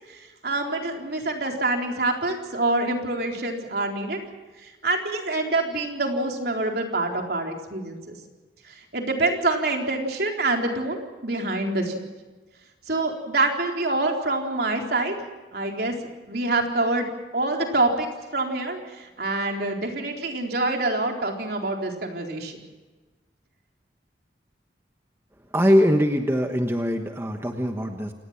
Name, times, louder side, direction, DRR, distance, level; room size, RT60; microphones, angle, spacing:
voice 1, 0.1-4.2 4.6-8.2 8.6-12.0 12.9-15.1 15.5-15.9 16.3-22.6, right 2 dB, 60° right, 2 dB, 4.1 m, -26 dB
voice 2, 25.5-28.1, equal, 15° right, 4 dB, 1.3 m, -22 dB
29.0 x 18.5 x 5.9 m, 1.2 s
head